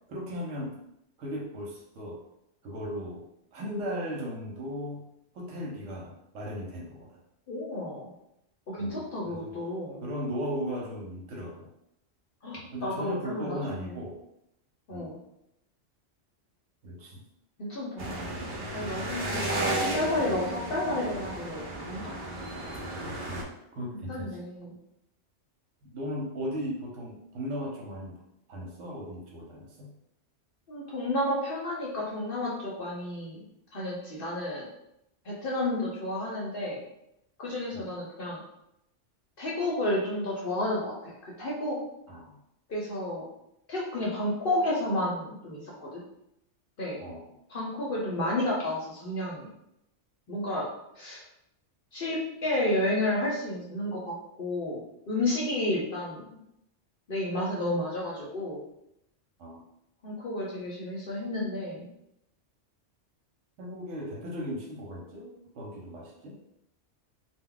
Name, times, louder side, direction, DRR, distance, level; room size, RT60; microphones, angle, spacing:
voice 1, 0.1-0.8 1.2-2.2 2.6-5.0 5.3-7.2 8.8-9.6 10.0-11.7 12.5-14.2 14.9-15.1 16.8-17.2 19.3-19.4 23.3-23.5 23.7-24.4 25.8-28.2 28.5-29.9 37.7-37.9 42.1-42.4 47.0-47.3 59.4-59.6 63.6-66.4, equal, 85° right, -2 dB, 1.0 m, -37 dB
voice 2, 7.5-8.1 8.7-10.0 12.4-13.9 14.9-15.2 17.6-18.3 18.7-22.2 24.1-24.8 30.7-33.4 33.7-34.7 35.2-36.8 37.4-38.4 39.4-41.8 42.7-43.2 43.7-46.0 46.8-47.0 47.5-49.5 50.3-50.7 50.9-51.2 51.9-56.3 57.1-58.6 60.0-61.9, left 1 dB, 55° left, -4 dB, 0.7 m, -31 dB
sound 1, 18.0-23.4, right 1 dB, 55° right, 0.6 m, -33 dB
2.2 x 2.1 x 3.7 m, 0.80 s
omnidirectional pair, 1.2 m